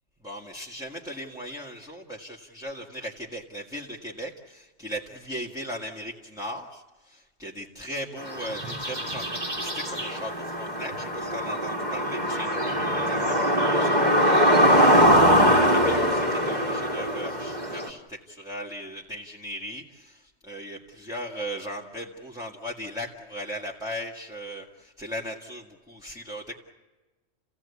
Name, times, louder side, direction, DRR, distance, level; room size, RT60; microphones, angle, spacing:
voice 1, 0.2-26.6, equal, 5° right, -3 dB, 2.0 m, -38 dB
sound 1, 8.2-17.9, equal, 35° right, 2.5 m, -22 dB
30.0 x 16.5 x 8.4 m, 1.2 s
omnidirectional pair, 1.3 m